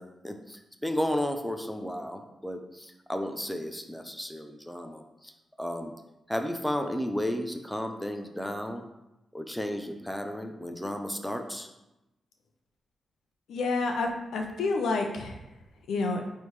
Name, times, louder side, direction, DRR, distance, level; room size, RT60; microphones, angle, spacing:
voice 1, 0.0-5.3 5.6-5.9 6.3-8.8 9.3-11.7, equal, 5° left, 5 dB, 0.6 m, -33 dB
voice 2, 13.5-15.4 15.9-16.2, left 3 dB, 90° left, 3 dB, 0.9 m, -29 dB
9.1 x 3.5 x 3.2 m, 0.94 s
wide cardioid pair, 130°, 0 cm